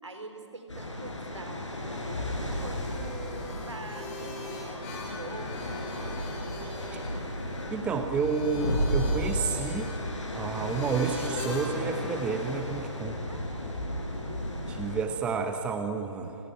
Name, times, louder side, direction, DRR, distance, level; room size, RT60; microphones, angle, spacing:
voice 1, 0.0-4.9 5.2-6.2 13.3-13.6 14.1-14.5, right 2 dB, 70° right, 7 dB, 4.2 m, -44 dB
sound 1, 0.7-15.0, left 1 dB, 75° left, 6.9 m, -34 dB
sound 2, 2.8-12.8, left 2 dB, 25° left, 5.2 m, -44 dB
voice 2, 7.7-9.9 10.3-13.2 14.7-16.4, right 5 dB, 5° right, 7 dB, 0.9 m, -30 dB
29.0 x 20.0 x 8.9 m, 3.0 s
figure-of-eight pair, 145°, 16 cm